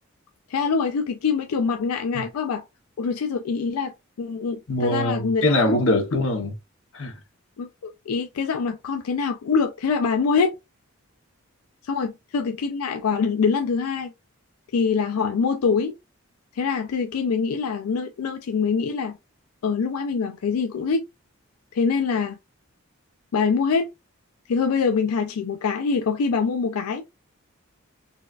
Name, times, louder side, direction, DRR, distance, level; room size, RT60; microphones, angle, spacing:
voice 1, 0.5-2.6 3.0-6.0 7.6-10.5 11.8-14.1 14.7-15.9 16.6-19.2 19.6-21.0 21.7-22.4 23.3-23.9 24.5-27.0, left 5 dB, 90° left, 0.4 m, -24 dB
voice 2, 4.7-6.5 6.9-7.1, left 1 dB, 65° left, 0.9 m, -22 dB
4.0 x 2.3 x 2.4 m
head